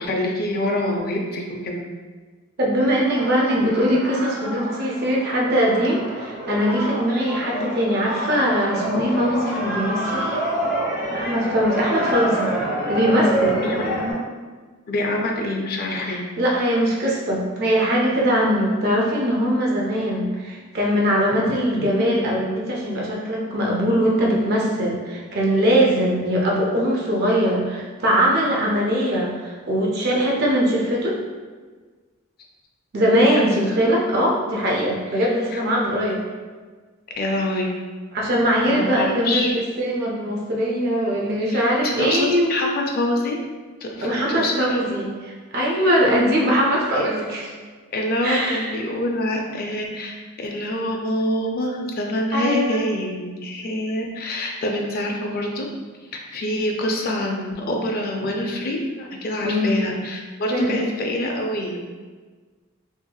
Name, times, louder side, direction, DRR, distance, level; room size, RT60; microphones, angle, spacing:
voice 1, 0.0-1.8 13.6-13.8 14.9-16.2 33.1-33.4 35.5-35.6 37.2-37.7 38.6-39.6 41.5-43.4 43.8-44.8 45.8-45.9 46.9-47.2 47.9-55.7 56.3-61.9, left 1 dB, 45° left, 0 dB, 0.4 m, -26 dB
voice 2, 2.6-10.2 11.1-12.5 12.9-13.6 16.0-31.2 32.9-36.2 38.1-42.5 44.0-45.1 45.5-47.5 48.2-48.7 52.3-52.8 59.4-59.7 60.5-60.8, equal, 45° right, -3 dB, 0.4 m, -21 dB
sound 1, 2.7-14.1, right 1 dB, 5° right, 0.8 m, -27 dB
2.8 x 2.7 x 2.2 m, 1.4 s
head